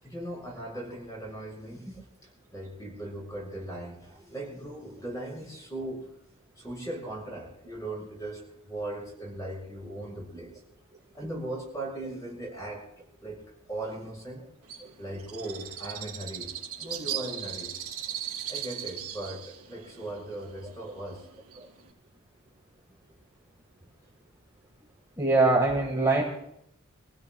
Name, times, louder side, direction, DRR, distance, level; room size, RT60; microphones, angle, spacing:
voice 1, 0.0-6.1 6.6-8.4 8.7-10.5 11.1-13.4 13.7-14.4 15.0-16.5 16.8-17.7 18.1-21.3, right 1 dB, 15° left, -3 dB, 6.4 m, -38 dB
Bird, 14.7-21.9, right 10 dB, 85° right, 2.5 m, -38 dB
voice 2, 25.2-26.2, right 3 dB, 15° right, -2 dB, 1.6 m, -23 dB
27.0 x 16.0 x 2.3 m, 0.75 s
head